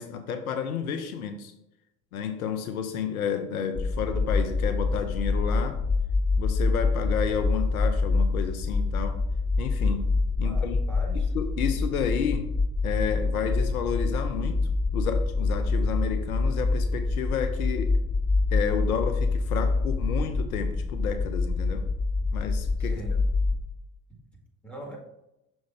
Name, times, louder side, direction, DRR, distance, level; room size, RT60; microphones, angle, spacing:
voice 1, 0.0-1.5 2.1-5.8 6.4-9.2 9.6-10.1 10.4-10.8 11.3-12.5 12.8-14.6 14.9-18.0 18.5-21.8 22.3-23.0, left 7 dB, 80° left, 8 dB, 0.7 m, -31 dB
sound 1, 3.8-23.6, left 3 dB, 30° left, 1.2 m, -26 dB
voice 2, 10.4-11.3 22.8-23.3 24.6-25.0, right 2 dB, ahead, -1 dB, 1.9 m, -41 dB
6.2 x 3.1 x 5.5 m, 0.87 s
figure-of-eight pair, 60°, 42 cm